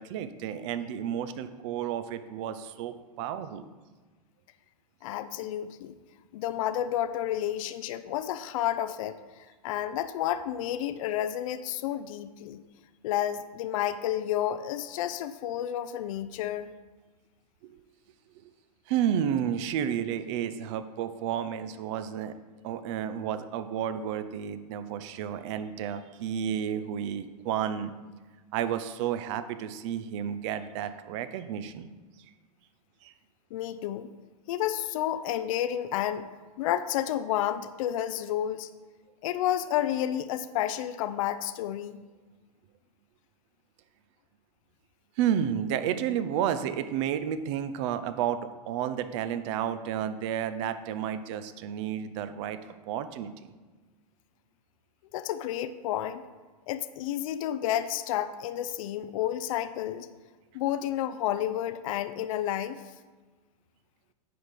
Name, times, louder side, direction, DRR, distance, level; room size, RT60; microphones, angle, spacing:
voice 1, 0.0-3.7 17.6-17.8 18.9-22.4 22.6-27.9 28.5-31.9 33.0-33.1 45.2-48.4 48.7-53.5, right 9 dB, 50° right, 11 dB, 0.7 m, -31 dB
voice 2, 5.0-5.9 6.3-9.2 9.6-12.6 13.0-16.7 33.5-34.1 34.5-36.3 36.6-38.7 39.2-42.0 55.1-56.2 56.7-60.1 60.5-62.8, left 11 dB, 60° left, 12 dB, 0.5 m, -30 dB
9.7 x 4.9 x 5.2 m, 1.3 s
hypercardioid pair, 130°, 20 cm